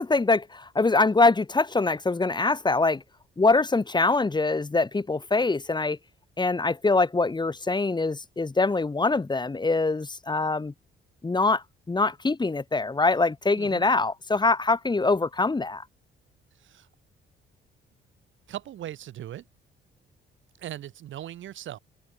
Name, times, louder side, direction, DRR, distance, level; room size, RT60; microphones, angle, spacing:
voice 1, 0.0-3.0 3.4-6.0 6.4-10.7 11.2-15.8, left 3 dB, 20° left, 2.6 m, -24 dB
voice 2, 13.6-13.9 16.6-16.9 18.5-19.4 20.6-21.8, right 12 dB, 75° right, 4.6 m, -39 dB
cardioid pair, 90°, 20 cm